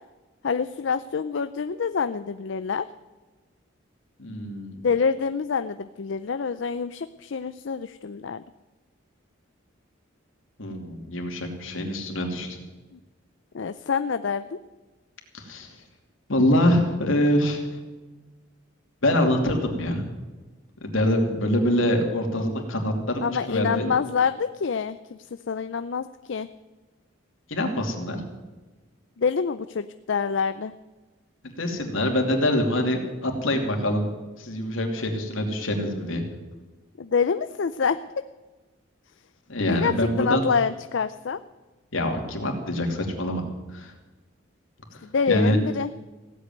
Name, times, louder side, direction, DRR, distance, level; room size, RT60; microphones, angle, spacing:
voice 1, 0.4-2.9 4.8-8.4 13.5-14.6 23.2-25.2 25.5-26.5 29.2-30.7 37.0-38.0 39.6-41.4 45.0-45.9, left 5 dB, 65° left, 11 dB, 0.5 m, -26 dB
voice 2, 4.2-4.7 10.6-12.6 15.3-15.7 16.3-17.7 19.0-20.0 20.8-23.9 27.5-28.2 31.4-34.1 34.4-36.2 39.5-40.4 41.9-43.4 43.7-43.9 44.9-45.0 45.3-45.6, left 1 dB, 85° left, 3 dB, 2.8 m, -24 dB
16.5 x 8.3 x 9.4 m, 1.2 s
head